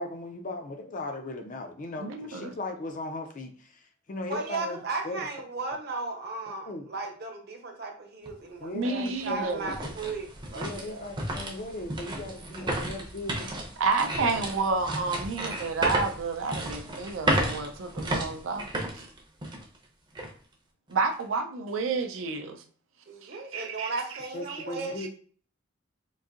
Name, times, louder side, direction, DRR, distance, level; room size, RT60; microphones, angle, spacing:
voice 1, 0.0-4.8 5.0-5.2 6.7-6.9 8.6-9.9 10.5-13.7 24.3-25.1, left 2 dB, 40° left, 0.5 m, -38 dB
voice 2, 2.0-2.5 8.7-9.7 13.8-18.7 20.9-22.6 23.2-23.9 24.5-24.6 25.0-25.1, right 4 dB, 70° right, 0.5 m, -30 dB
voice 3, 4.3-11.1 12.5-12.7 23.1-25.1, right 3 dB, 50° right, 0.8 m, -36 dB
Walk - Wooden floor, 8.2-8.3 8.9-19.8 20.2-20.3 20.9-21.2, right 1 dB, 20° right, 0.6 m, -33 dB
3.8 x 2.6 x 2.5 m
head